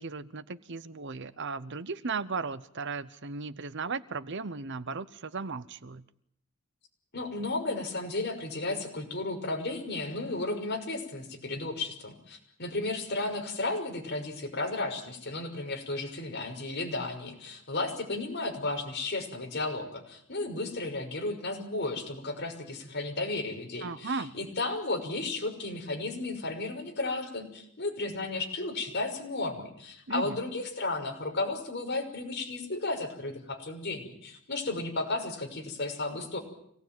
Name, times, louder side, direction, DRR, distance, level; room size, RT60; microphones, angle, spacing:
voice 1, 0.0-6.0 23.8-24.4 30.1-30.4, right 4 dB, 55° right, 15 dB, 0.9 m, -36 dB
voice 2, 7.1-36.4, left 2 dB, 50° left, 2 dB, 6.0 m, -34 dB
26.0 x 18.5 x 9.3 m, 0.70 s
head